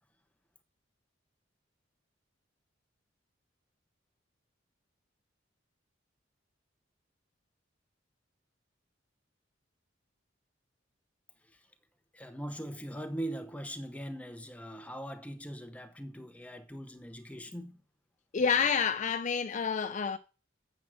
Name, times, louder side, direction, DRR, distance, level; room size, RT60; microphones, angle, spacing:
voice 1, 12.1-17.8, right 1 dB, 5° left, 0.9 m, -41 dB
voice 2, 18.3-20.2, left 6 dB, 40° left, 0.4 m, -28 dB
7.2 x 6.2 x 7.6 m
head